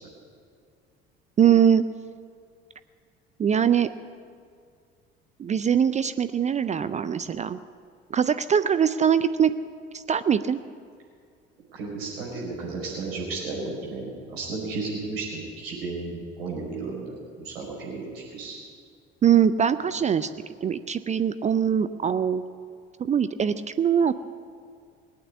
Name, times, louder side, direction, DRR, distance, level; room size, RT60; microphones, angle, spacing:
voice 1, 1.4-1.8 3.4-3.9 5.4-7.6 8.1-9.5 9.9-10.6 19.2-20.3 20.6-22.4 23.0-24.1, right 8 dB, 25° right, 13 dB, 0.5 m, -22 dB
voice 2, 11.7-14.0 14.3-17.2 17.4-18.0 18.3-18.6, right 3 dB, 70° right, -3 dB, 5.3 m, -33 dB
19.5 x 8.7 x 8.5 m, 2.2 s
figure-of-eight pair, 55°, 31 cm